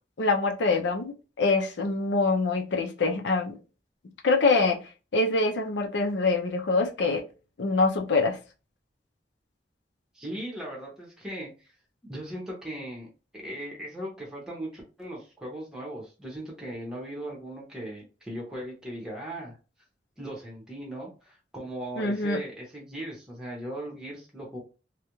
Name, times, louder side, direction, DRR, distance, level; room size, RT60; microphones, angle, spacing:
voice 1, 0.2-3.6 4.2-4.8 5.1-7.2 7.6-8.4 22.0-22.4, left 3 dB, 80° left, 3 dB, 0.5 m, -24 dB
voice 2, 10.1-11.7 12.0-13.1 13.3-19.6 20.2-24.6, right 1 dB, 5° right, -3 dB, 0.8 m, -38 dB
2.4 x 2.1 x 2.9 m, 0.33 s
head